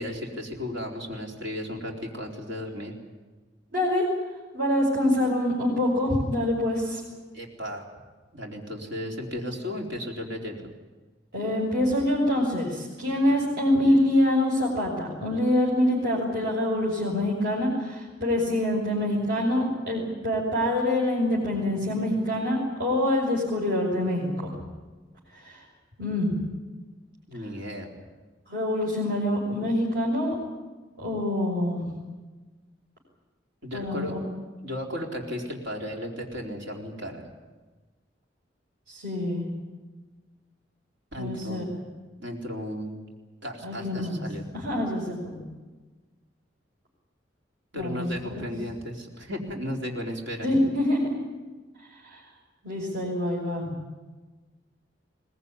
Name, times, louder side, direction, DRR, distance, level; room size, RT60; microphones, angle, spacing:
voice 1, 0.0-2.9 7.3-7.9 8.3-10.6 27.3-27.9 33.6-34.2 34.6-37.2 41.1-41.7 42.2-43.0 43.4-44.5 47.7-50.5, left 1 dB, 80° right, 1 dB, 4.2 m, -34 dB
voice 2, 3.7-4.0 4.5-7.0 11.3-24.5 25.3-25.6 26.0-26.3 28.5-30.3 31.0-31.8 33.7-34.2 38.9-39.5 41.2-41.6 43.6-44.2 44.5-45.4 47.7-48.1 48.4-48.5 50.4-51.0 52.0-52.2 52.6-53.7, left 1 dB, 60° right, -5 dB, 6.2 m, -25 dB
22.0 x 20.0 x 9.8 m, 1.3 s
head